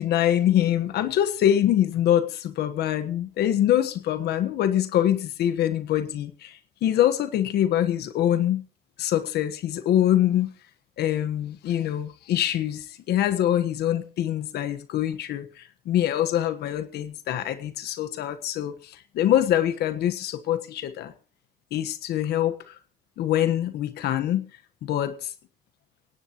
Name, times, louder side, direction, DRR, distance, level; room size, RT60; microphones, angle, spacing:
voice 1, 0.0-8.6 9.0-10.5 11.0-21.1 21.7-22.8 23.2-24.5 24.8-25.3, left 11 dB, 75° left, 10 dB, 1.4 m, -24 dB
18.0 x 18.0 x 3.1 m, 0.36 s
cardioid pair, 110°, 17 cm